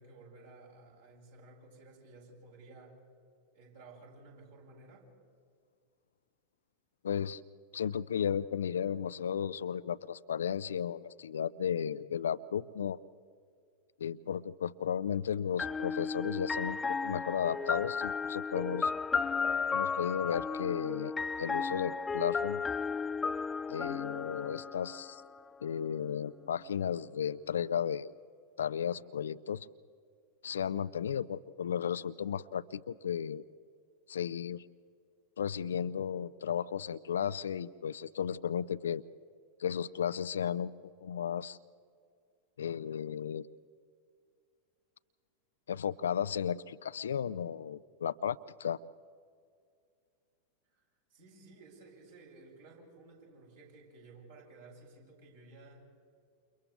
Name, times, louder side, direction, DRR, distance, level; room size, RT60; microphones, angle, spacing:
voice 1, 0.0-3.0 3.5-5.1 50.7-50.8 51.1-55.9, right 3 dB, 60° right, -4 dB, 8.0 m, -55 dB
voice 2, 7.0-7.4 7.7-13.0 14.0-18.9 19.7-22.6 23.7-25.2 25.6-28.1 28.6-29.7 30.4-33.4 34.1-34.6 35.4-39.0 39.6-40.7 41.0-41.6 42.6-43.4 45.7-48.8, left 8 dB, 65° left, 16 dB, 0.5 m, -34 dB
sound 1, 15.6-25.4, left 5 dB, 15° left, 0.5 m, -34 dB
29.5 x 29.0 x 3.5 m, 2.3 s
figure-of-eight pair, 90°, 0 cm